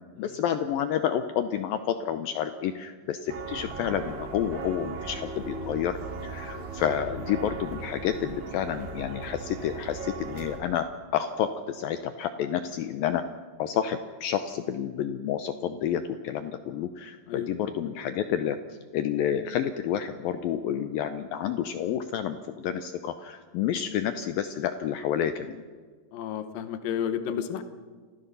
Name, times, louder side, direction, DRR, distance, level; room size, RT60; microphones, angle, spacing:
voice 1, 0.2-13.3 13.6-18.6 18.9-25.6, left 9 dB, 85° left, 9 dB, 2.0 m, -29 dB
sound 1, 3.3-10.6, right 3 dB, 65° right, 4.6 m, -38 dB
voice 2, 26.1-27.6, left 9 dB, 65° left, 9 dB, 2.5 m, -32 dB
28.5 x 15.0 x 6.9 m, 1.5 s
omnidirectional pair, 5.1 m